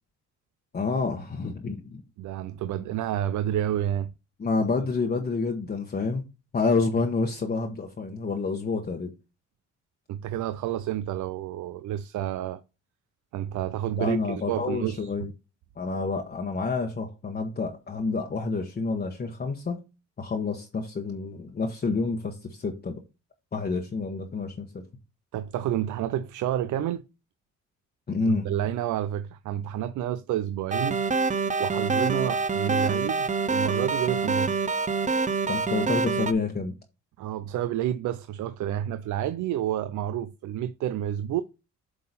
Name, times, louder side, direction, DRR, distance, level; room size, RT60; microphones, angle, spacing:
voice 1, 0.7-2.0 4.4-6.2 6.5-9.1 14.0-15.3 15.8-19.8 20.2-23.0 23.5-24.8 28.1-28.5 35.5-36.7, left 4 dB, 35° left, 1.1 m, -28 dB
voice 2, 2.2-4.1 10.1-12.6 13.3-15.1 25.3-27.0 28.3-31.0 31.6-34.7 37.2-41.4, right 11 dB, 75° right, 0.5 m, -29 dB
sound 1, 30.7-36.3, right 4 dB, 25° right, 0.7 m, -26 dB
8.0 x 3.8 x 4.1 m
cardioid pair, 90°, 30 cm